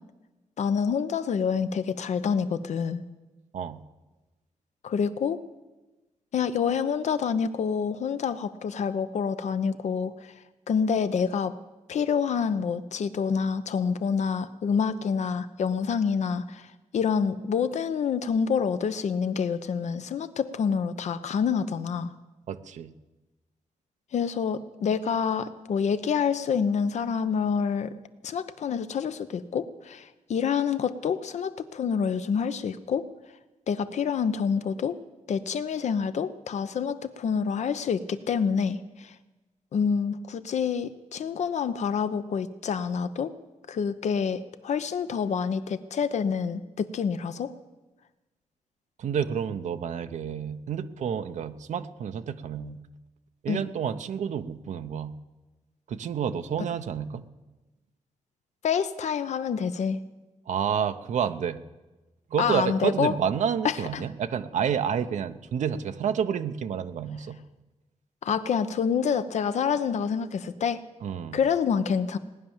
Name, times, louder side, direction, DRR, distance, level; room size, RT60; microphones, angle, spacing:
voice 1, 0.6-3.0 4.8-5.4 6.3-10.1 10.7-11.5 11.9-16.7 16.9-22.1 24.1-27.9 28.2-33.1 33.7-35.0 35.3-39.1 39.7-43.3 43.7-47.5 53.5-53.6 58.6-60.0 62.4-63.2 63.6-64.0 68.2-70.8 71.3-72.2, left 6 dB, 75° left, 12 dB, 0.9 m, -27 dB
voice 2, 22.5-22.9 49.0-52.8 53.4-55.1 55.9-57.3 60.5-61.6 62.3-67.4 71.0-71.4, right 7 dB, 85° right, 9 dB, 0.8 m, -29 dB
18.0 x 10.5 x 7.3 m, 1.1 s
wide cardioid pair, 110°, 12 cm